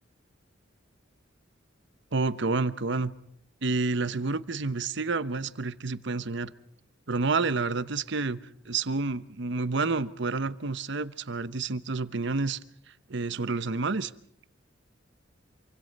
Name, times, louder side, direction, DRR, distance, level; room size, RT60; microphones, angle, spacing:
voice 1, 2.1-3.1 3.6-6.5 7.1-8.4 8.6-12.6 13.1-14.1, right 3 dB, 65° right, 15 dB, 1.0 m, -29 dB
27.5 x 25.0 x 5.4 m, 0.67 s
head